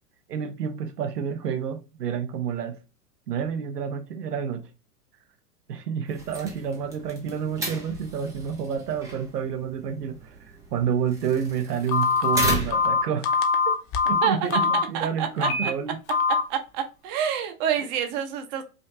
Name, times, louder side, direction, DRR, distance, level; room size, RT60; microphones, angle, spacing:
voice 1, 0.3-2.8 3.3-4.6 5.7-13.4 14.1-16.0, right 7 dB, 80° right, 0.8 m, -29 dB
sound 1, 6.1-13.0, right 2 dB, 10° right, 0.3 m, -35 dB
Telephone, 11.9-14.8 15.4-15.7 16.1-16.4, left 5 dB, 30° left, 0.6 m, -22 dB
voice 2, 14.9-15.7 16.5-18.6, right 8 dB, 35° right, 0.8 m, -27 dB
5.1 x 2.4 x 2.6 m
hypercardioid pair, 105°, 47 cm